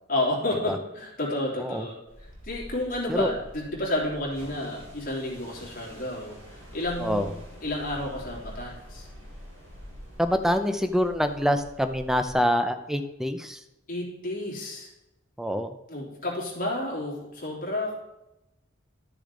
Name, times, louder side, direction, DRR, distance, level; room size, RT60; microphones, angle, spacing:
voice 1, 0.1-1.9 2.4-7.3 7.6-9.1 13.9-14.9 15.9-17.9, left 1 dB, 45° left, -3 dB, 3.0 m, -31 dB
sound 1, 2.1-12.3, equal, 70° right, 3.9 m, -46 dB
voice 2, 10.2-13.6 15.4-15.7, equal, ahead, 8 dB, 0.6 m, -25 dB
12.0 x 6.8 x 3.8 m, 0.91 s
head